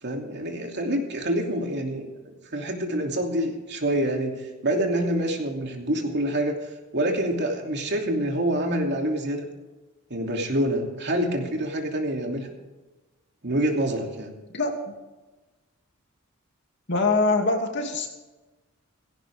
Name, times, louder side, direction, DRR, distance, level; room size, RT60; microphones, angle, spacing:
voice 1, 0.0-6.6 6.9-9.4 10.1-12.5 13.4-14.3, right 1 dB, 55° right, 2 dB, 2.9 m, -26 dB
voice 2, 14.5-14.9 16.9-18.1, left 3 dB, 60° left, 3 dB, 2.6 m, -24 dB
17.0 x 16.5 x 3.6 m, 1.1 s
head